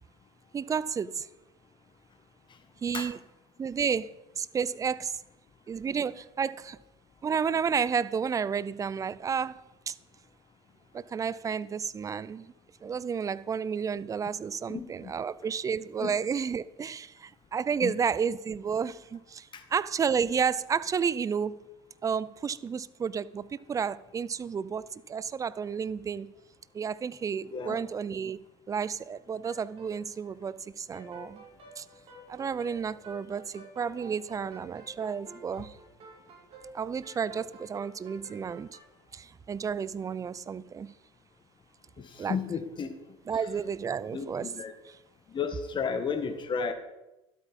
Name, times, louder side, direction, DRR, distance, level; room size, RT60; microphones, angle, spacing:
voice 1, 0.5-1.3 2.8-3.2 3.6-4.1 4.4-5.1 5.7-6.8 7.2-9.9 10.9-12.5 12.8-21.6 22.0-26.3 26.7-28.4 28.7-31.4 31.8-31.9 32.3-35.7 36.7-38.7 39.1-40.9 42.2-42.3 43.3-44.5, right 6 dB, 25° right, 18 dB, 0.5 m, -31 dB
voice 2, 14.7-15.1 16.0-16.2 17.8-17.9 19.5-19.6 27.5-27.8 42.0-42.9 44.1-44.7 45.3-46.7, left 6 dB, 35° left, 9 dB, 1.6 m, -33 dB
sound 1, 29.4-30.6 30.9-38.8, right 2 dB, 40° right, 4.9 m, -50 dB
12.0 x 8.2 x 5.4 m, 0.95 s
supercardioid pair, 90°, 14 cm